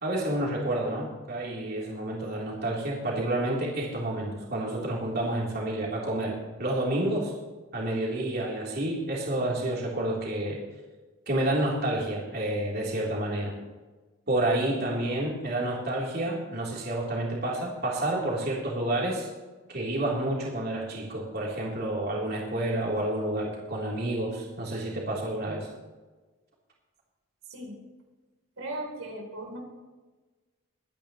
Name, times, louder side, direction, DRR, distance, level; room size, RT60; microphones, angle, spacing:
voice 1, 0.0-7.3 7.7-10.6 11.3-13.6 14.3-19.3 19.7-25.7, right 1 dB, 50° right, -4 dB, 3.4 m, -29 dB
voice 2, 28.6-29.6, right 1 dB, 90° right, 1 dB, 3.5 m, -37 dB
23.0 x 10.5 x 3.1 m, 1.2 s
head